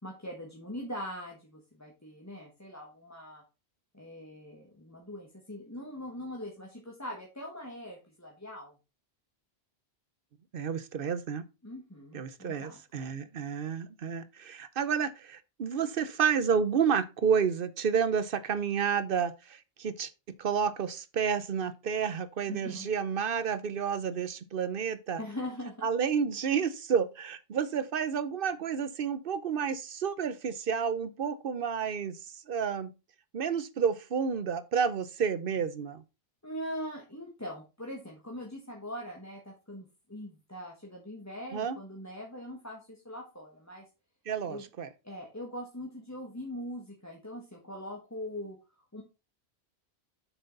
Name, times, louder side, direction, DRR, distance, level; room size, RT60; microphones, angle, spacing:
voice 1, 0.0-3.4 3.9-8.7 11.6-12.8 22.5-22.9 25.2-25.9 36.4-43.9 44.5-44.7 45.0-48.6 48.9-49.0, equal, 15° left, 1.5 m, -42 dB
voice 2, 10.5-11.4 12.1-20.1 20.4-25.2 25.8-32.9 33.3-36.0 41.5-41.8 44.3-44.9, right 7 dB, 60° right, 1.0 m, -30 dB
7.9 x 6.1 x 3.9 m
omnidirectional pair, 1.1 m